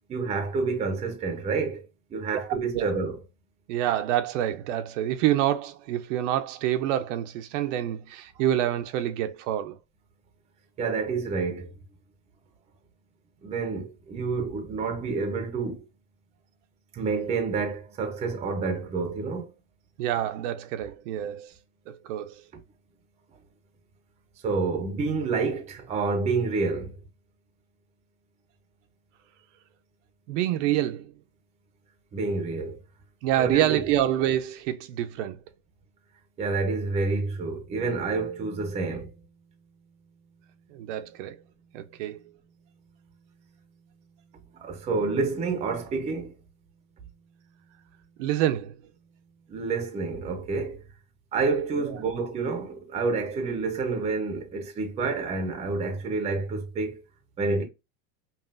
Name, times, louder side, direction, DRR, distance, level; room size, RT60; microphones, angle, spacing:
voice 1, 0.1-3.2 10.8-11.7 13.4-15.8 16.9-19.5 24.4-27.0 32.1-32.8 33.4-33.9 36.4-39.1 44.5-46.3 49.5-50.8 51.3-57.0 57.4-57.6, right 4 dB, 15° right, 0.6 m, -28 dB
voice 2, 3.7-9.8 20.0-21.5 21.9-22.4 30.3-31.1 33.2-35.4 40.7-41.4 41.7-42.2 48.2-48.8 51.8-51.9, right 12 dB, 60° right, 0.6 m, -27 dB
5.5 x 2.4 x 2.4 m
supercardioid pair, 160°, 41 cm